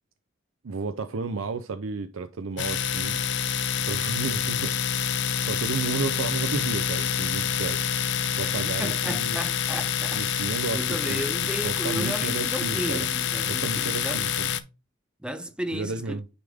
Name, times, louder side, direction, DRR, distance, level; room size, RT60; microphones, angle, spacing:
voice 1, 0.6-3.5 3.9-4.8 5.5-9.4 10.1-13.1 13.5-14.5 15.7-16.2, right 4 dB, 80° right, 0.5 m, -33 dB
Domestic sounds home sounds, 2.6-14.6, left 8 dB, 60° left, 0.6 m, -27 dB
voice 2, 8.4-14.3 15.2-16.2, equal, 5° right, 0.5 m, -34 dB
9.6 x 3.4 x 3.5 m
head